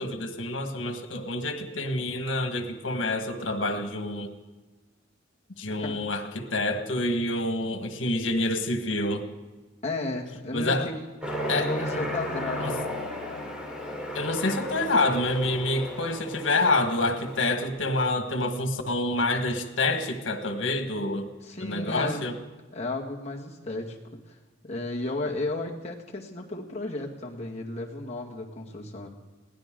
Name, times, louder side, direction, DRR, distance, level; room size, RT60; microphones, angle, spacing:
voice 1, 0.0-4.3 5.6-9.3 10.5-10.9 11.5-11.7 12.6-12.7 14.1-21.3 21.6-22.4, left 2 dB, 90° left, 6 dB, 1.6 m, -27 dB
voice 2, 9.8-11.0 11.5-12.8 21.4-22.3 22.7-24.0 24.3-24.4 24.6-29.1, left 2 dB, 35° left, -1 dB, 2.1 m, -33 dB
Aircraft, 11.2-17.7, equal, 5° right, 3.0 m, -34 dB
20.5 x 17.0 x 3.8 m, 1.2 s
head